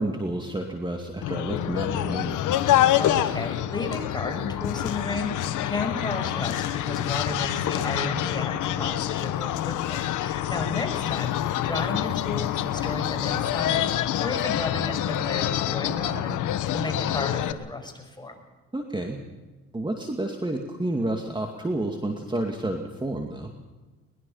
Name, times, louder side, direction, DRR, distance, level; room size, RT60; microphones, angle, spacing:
voice 1, 0.0-2.4 18.7-19.2 19.7-23.5, right 1 dB, 15° right, 3 dB, 2.3 m, -30 dB
sound 1, 1.2-17.5, left 12 dB, 80° left, 1.2 m, -26 dB
voice 2, 3.0-18.4, left 2 dB, 15° left, 3 dB, 5.9 m, -33 dB
22.5 x 20.5 x 5.7 m, 1.2 s
cardioid pair, 90°, 30 cm